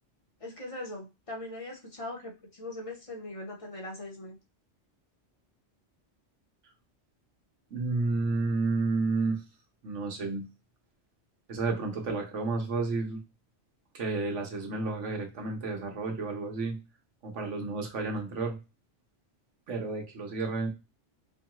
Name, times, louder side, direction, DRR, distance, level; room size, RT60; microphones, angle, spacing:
voice 1, 0.4-4.4, left 2 dB, 30° left, 0 dB, 1.0 m, -40 dB
voice 2, 7.7-9.4 9.8-10.5 11.5-13.2 13.9-16.8 17.2-18.6 19.7-20.7, right 3 dB, 80° right, 2 dB, 1.3 m, -31 dB
4.5 x 2.3 x 2.9 m, 0.27 s
omnidirectional pair, 1.2 m